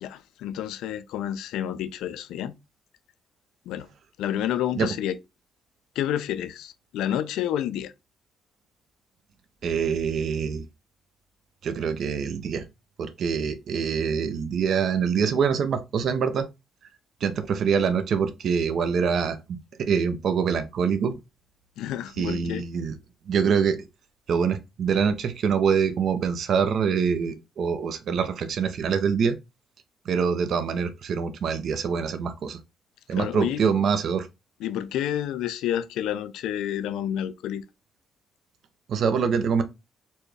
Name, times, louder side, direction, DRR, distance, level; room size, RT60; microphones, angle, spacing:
voice 1, 0.0-2.5 3.7-3.9 4.2-5.2 6.0-7.9 21.8-22.7 33.1-33.6 34.6-37.6, left 11 dB, 90° left, 0.3 m, -29 dB
voice 2, 9.6-10.7 11.6-12.6 13.0-16.5 17.2-19.4 19.8-21.1 22.2-23.0 23.3-23.8 24.3-29.4 30.1-32.6 33.1-34.3 38.9-39.6, right 6 dB, 65° right, 0.6 m, -25 dB
4.2 x 2.3 x 3.2 m
cardioid pair, 90°, 0 cm